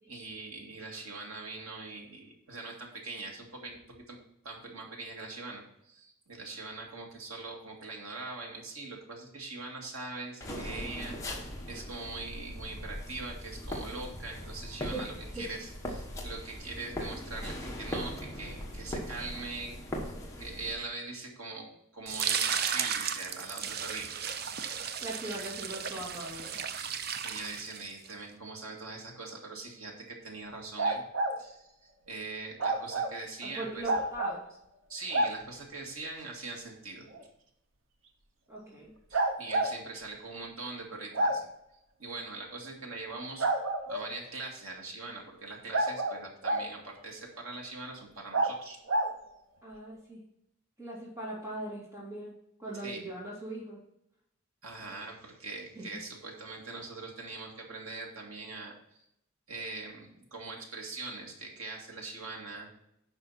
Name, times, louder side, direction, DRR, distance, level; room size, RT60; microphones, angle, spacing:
voice 1, 0.1-4.2 4.4-19.8 20.0-20.1 20.4-21.7 21.9-24.1 27.2-31.0 31.4-33.8 34.9-37.1 39.1-41.5 42.0-43.5 43.9-48.8 52.8-53.0 54.6-59.0 59.5-62.7, right 3 dB, 80° right, 0 dB, 2.2 m, -42 dB
sound 1, 10.4-20.7, equal, 15° left, 1.3 m, -40 dB
sound 2, 22.1-28.1, right 7 dB, 45° right, 0.6 m, -34 dB
voice 2, 25.0-26.6 33.4-34.4 38.5-38.9 49.6-50.2 50.8-52.3 52.6-53.8 55.8-55.9, right 1 dB, 15° right, -5 dB, 2.5 m, -40 dB
sound 3, 30.8-31.3 32.6-33.1 33.9-34.4 35.1-35.3 37.1-37.2 39.1-39.7 41.1-41.4 43.4-44.1 45.7-46.7 48.3-48.5 48.9-49.1, right 2 dB, 65° right, 1.0 m, -28 dB
9.1 x 5.7 x 4.2 m, 0.78 s
head